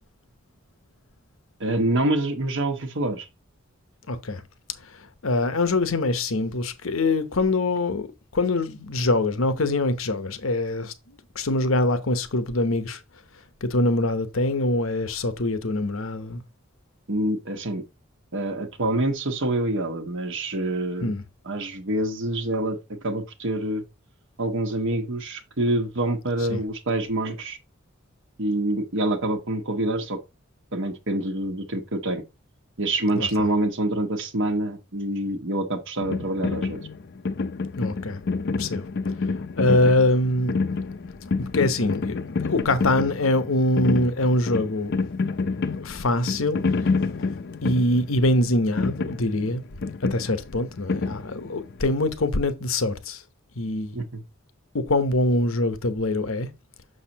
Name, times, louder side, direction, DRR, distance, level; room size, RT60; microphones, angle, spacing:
voice 1, 1.6-3.3 17.1-17.8 18.3-21.1 21.4-22.8 23.0-23.8 24.4-27.6 28.4-30.2 30.7-32.2 32.8-36.8 53.9-54.2, right 1 dB, 65° right, 1.2 m, -26 dB
voice 2, 4.1-4.4 5.2-8.1 8.3-10.9 11.3-13.0 13.6-16.4 21.0-21.2 26.5-26.6 33.1-33.3 37.8-38.2 38.6-38.8 39.6-40.6 41.5-45.0 45.8-47.0 47.6-49.6 50.1-53.2 53.6-54.0 54.7-56.5, left 2 dB, 75° left, 1.0 m, -24 dB
sound 1, 36.0-51.8, left 4 dB, 55° left, 0.6 m, -28 dB
6.5 x 6.5 x 2.9 m
head